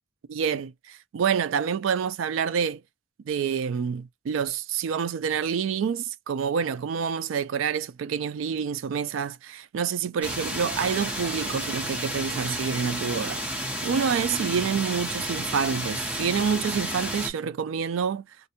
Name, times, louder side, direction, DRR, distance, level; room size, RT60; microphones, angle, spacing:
voice 1, 0.3-2.8 3.3-18.3, right 7 dB, 85° right, 0.3 m, -28 dB
sound 1, 10.2-17.3, equal, 5° right, 0.6 m, -31 dB
2.5 x 2.1 x 2.8 m
head